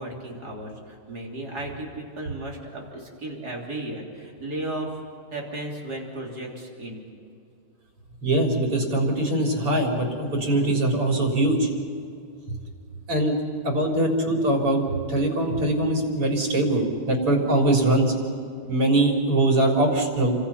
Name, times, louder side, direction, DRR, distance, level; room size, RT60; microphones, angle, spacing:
voice 1, 0.0-4.9 5.3-7.0, right 1 dB, 45° right, -1 dB, 3.8 m, -35 dB
voice 2, 8.2-11.7 13.1-13.4 13.6-14.8 15.1-18.1 18.7-20.3, right 1 dB, 90° right, 0 dB, 5.0 m, -22 dB
30.0 x 25.5 x 5.7 m, 2.4 s
omnidirectional pair, 2.4 m